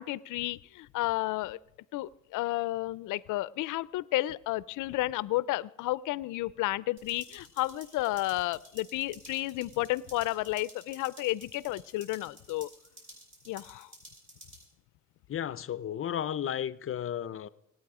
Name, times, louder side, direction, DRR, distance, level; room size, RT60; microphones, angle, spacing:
voice 1, 0.0-1.6 1.9-12.7 13.5-13.9, left 17 dB, 90° left, 0.5 m, -32 dB
sound 1, 7.0-14.6, right 1 dB, 40° right, 6.2 m, -53 dB
voice 2, 15.3-17.5, left 10 dB, 45° left, 0.6 m, -33 dB
25.5 x 9.3 x 4.9 m
cardioid pair, 90°, 30 cm